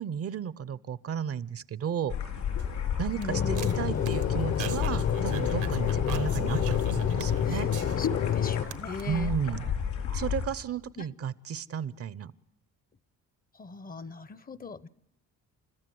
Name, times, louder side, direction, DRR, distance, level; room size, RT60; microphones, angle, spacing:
voice 1, 0.0-2.2 3.0-7.7 9.1-9.6 10.1-12.3, right 8 dB, 50° right, 18 dB, 0.7 m, -33 dB
sound 1, 2.1-10.4, left 7 dB, 75° left, 4.2 m, -34 dB
sound 2, 2.4-8.3 8.6-9.0, right 9 dB, 85° right, 1.3 m, -42 dB
voice 2, 3.1-4.1 7.4-7.7 8.0-9.3 11.0-11.1 13.5-14.9, left 3 dB, 30° left, 17 dB, 0.8 m, -40 dB
sound 3, 3.3-8.7, left 9 dB, 55° left, 1.1 m, -28 dB
29.5 x 13.5 x 7.8 m, 0.84 s
cardioid pair, 90°, 30 cm